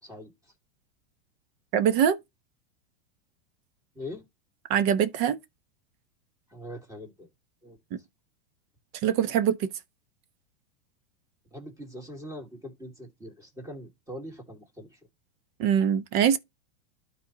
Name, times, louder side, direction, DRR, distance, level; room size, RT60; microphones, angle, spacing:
voice 1, 0.0-0.5 3.9-4.2 6.5-7.3 7.6-7.8 11.5-15.0, left 1 dB, 10° right, 2.5 m, -42 dB
voice 2, 1.7-2.2 4.7-5.4 9.0-9.7 15.6-16.4, right 9 dB, 45° right, 1.0 m, -23 dB
12.5 x 4.3 x 2.9 m
supercardioid pair, 135°, 35 cm